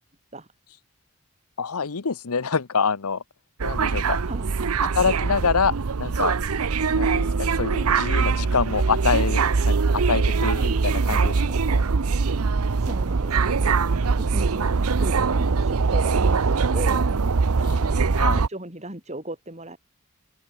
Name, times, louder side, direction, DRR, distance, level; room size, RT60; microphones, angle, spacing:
voice 1, 1.6-3.2 3.6-4.2 4.9-6.4 6.9-11.3 11.7-11.8 18.1-18.4, left 5 dB, 85° left, 0.9 m, -26 dB
sound 1, 3.6-18.5, right 4 dB, 85° right, 0.7 m, -22 dB
voice 2, 4.2-4.6 12.8-17.1 17.5-19.8, right 1 dB, 30° right, 6.3 m, -37 dB
open air
head